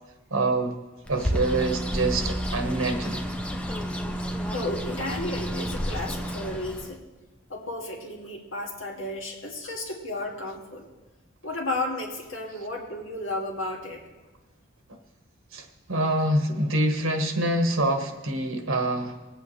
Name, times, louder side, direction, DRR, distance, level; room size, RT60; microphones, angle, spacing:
voice 1, 0.3-0.8 1.1-3.2 15.5-19.2, right 1 dB, 85° right, 4 dB, 1.5 m, -26 dB
Bird, 1.1-7.0, equal, 5° left, 0.7 m, -30 dB
voice 2, 4.5-7.0 7.5-10.8 11.4-14.0, left 2 dB, 75° left, -1 dB, 2.4 m, -33 dB
21.0 x 8.4 x 3.3 m, 1.1 s
head